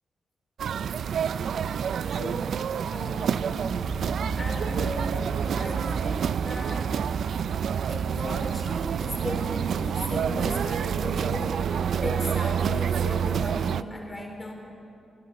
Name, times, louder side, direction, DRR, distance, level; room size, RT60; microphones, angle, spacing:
sound 1, 0.6-13.8, right 8 dB, 75° right, 0.5 m, -28 dB
voice 1, 2.1-2.6 2.9-3.9 4.4-7.1 7.9-14.5, left 1 dB, 25° left, 2 dB, 4.5 m, -36 dB
sound 2, 3.8-13.5, right 4 dB, 45° right, 5.8 m, -38 dB
28.0 x 19.0 x 6.8 m, 2.7 s
supercardioid pair, 45°, 0 cm